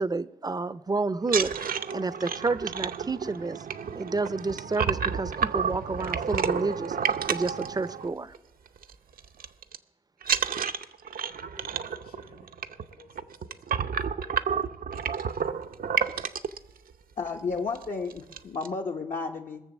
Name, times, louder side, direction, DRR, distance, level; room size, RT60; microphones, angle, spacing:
voice 1, 0.0-3.7 3.9-8.3, right 3 dB, 25° right, 16 dB, 0.5 m, -30 dB
sound 1, 1.2-8.4 8.7-8.9 9.2-9.8 10.2-16.6 17.3-17.4 17.7-17.8 18.1-18.7, right 7 dB, 70° right, 0.6 m, -30 dB
voice 2, 11.5-14.8, left 4 dB, 80° left, 4 dB, 2.7 m, -57 dB
voice 3, 17.2-19.6, left 4 dB, 60° left, 1 dB, 0.9 m, -32 dB
20.5 x 6.9 x 7.2 m, 0.98 s
cardioid pair, 85°, 15 cm